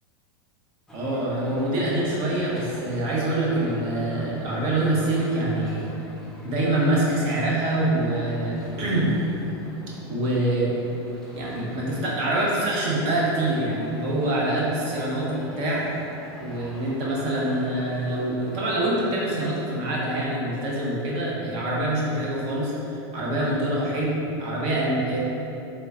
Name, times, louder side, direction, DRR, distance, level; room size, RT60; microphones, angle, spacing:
sound 1, 0.9-18.9, equal, 5° left, 0.5 m, -44 dB
voice 1, 0.9-5.8 6.4-9.1 10.1-10.7 11.3-15.8 16.4-25.2, right 1 dB, 50° right, -5 dB, 0.7 m, -25 dB
3.2 x 2.9 x 2.4 m, 2.9 s
supercardioid pair, 125°, 14 cm